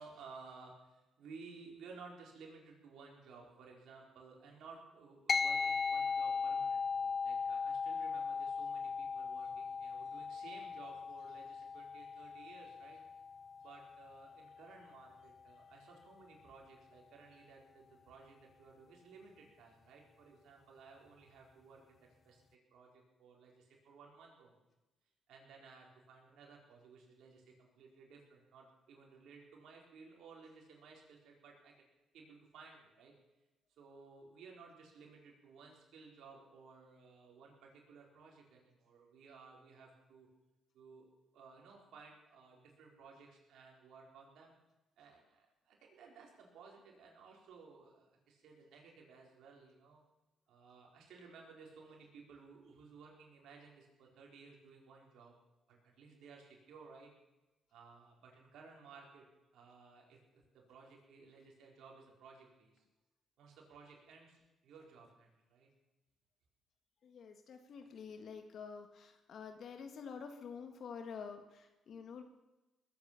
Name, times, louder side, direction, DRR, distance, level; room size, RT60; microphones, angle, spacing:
voice 1, 0.0-13.0 13.6-22.4 22.7-24.5 25.3-31.7 32.1-33.1 33.8-40.3 40.7-41.0 41.3-44.5 45.0-50.0 50.5-55.3 55.7-57.1 57.7-59.2 59.5-62.8 63.4-65.7 68.7-68.9, right 4 dB, 75° right, -1 dB, 4.6 m, -57 dB
sound 1, 5.3-15.0, left 5 dB, 40° left, 0.4 m, -38 dB
voice 2, 67.0-72.2, left 6 dB, 60° left, 6 dB, 1.7 m, -48 dB
20.5 x 9.7 x 7.0 m, 1.0 s
cardioid pair, 90°, 0 cm